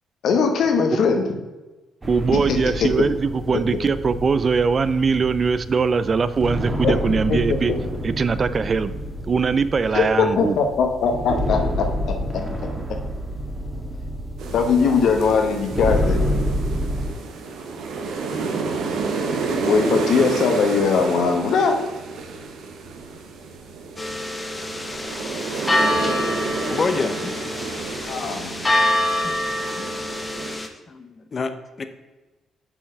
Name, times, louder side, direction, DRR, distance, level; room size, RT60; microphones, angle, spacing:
voice 1, 0.2-1.2 2.3-2.9 6.8-7.4 9.9-12.4 14.5-16.2 19.6-21.8 28.1-28.5, left 5 dB, 70° left, 4 dB, 1.2 m, -20 dB
sound 1, 2.0-17.1, equal, 20° right, 1.5 m, -28 dB
voice 2, 2.1-7.7 8.0-8.9 9.3-10.6, right 5 dB, 40° right, 14 dB, 0.3 m, -21 dB
sound 2, 14.4-30.5, right 4 dB, 80° right, 1.1 m, -30 dB
sound 3, 24.0-30.7, left 1 dB, 20° left, 0.9 m, -25 dB
voice 3, 26.7-27.3 28.9-29.3 30.9-31.8, left 4 dB, 40° left, 9 dB, 0.7 m, -28 dB
7.1 x 4.7 x 5.3 m, 1.2 s
cardioid pair, 90°, 0 cm